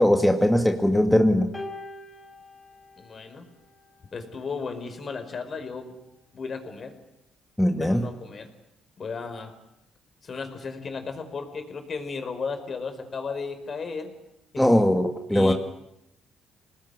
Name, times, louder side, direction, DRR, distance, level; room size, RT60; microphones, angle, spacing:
voice 1, 0.0-1.5 7.6-8.1 14.6-15.5, left 1 dB, 5° left, 4 dB, 2.1 m, -20 dB
sound 1, 1.5-4.0 5.0-5.2, left 2 dB, 20° left, 5.6 m, -43 dB
voice 2, 3.0-3.5 4.1-5.9 6.3-6.9 7.7-8.5 9.0-9.5 10.2-14.1 14.5-14.6 15.3-15.5, left 4 dB, 45° left, 7 dB, 5.2 m, -34 dB
27.0 x 19.5 x 10.0 m, 0.83 s
cardioid pair, 90°, 0 cm